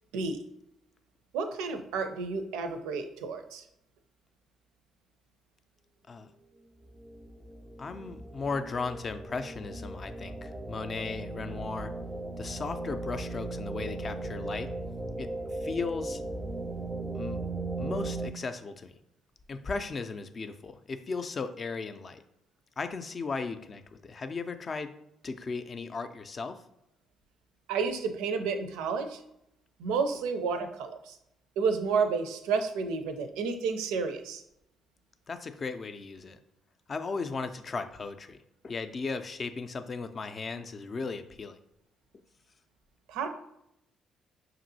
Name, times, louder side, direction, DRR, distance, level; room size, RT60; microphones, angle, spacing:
voice 1, 1.3-3.6 27.7-29.2 29.8-31.2 31.6-34.4 43.1-43.3, right 5 dB, 70° right, 7 dB, 0.5 m, -31 dB
sound 1, 7.0-18.3, right 2 dB, 15° right, 0.5 m, -37 dB
voice 2, 7.8-11.9 12.4-14.7 15.2-16.2 17.1-17.4 17.8-18.9 19.5-22.2 22.8-24.9 25.2-26.6 35.3-36.4 36.9-41.6, left 4 dB, 40° left, 9 dB, 0.4 m, -36 dB
5.2 x 2.7 x 2.7 m, 0.81 s
hypercardioid pair, 45°, 0 cm